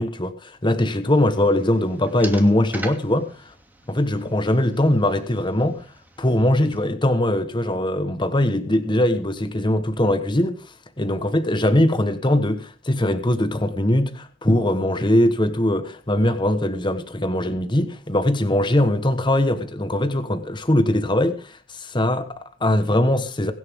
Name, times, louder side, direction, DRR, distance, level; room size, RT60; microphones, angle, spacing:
voice 1, 0.0-3.5 3.9-5.8 6.2-23.5, left 1 dB, 25° left, 1.2 m, -21 dB
sound 1, 1.1-6.8, right 2 dB, 10° right, 2.6 m, -42 dB
22.5 x 11.0 x 3.6 m
head